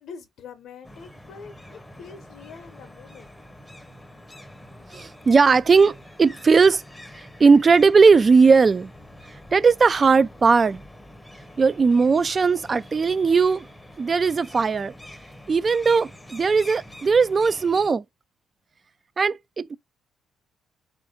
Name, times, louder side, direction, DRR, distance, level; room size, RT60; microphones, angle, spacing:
voice 1, 0.0-3.3, left 6 dB, 75° left, 0.7 m, -44 dB
sound 1, 0.8-17.9, left 1 dB, 10° left, 0.7 m, -45 dB
voice 2, 4.9-6.8 7.2-8.9 9.5-10.8 11.6-13.7 14.0-14.9 15.5-18.0 19.2-19.8, right 5 dB, 35° right, 0.3 m, -18 dB
4.2 x 2.5 x 4.9 m
cardioid pair, 90°, 0 cm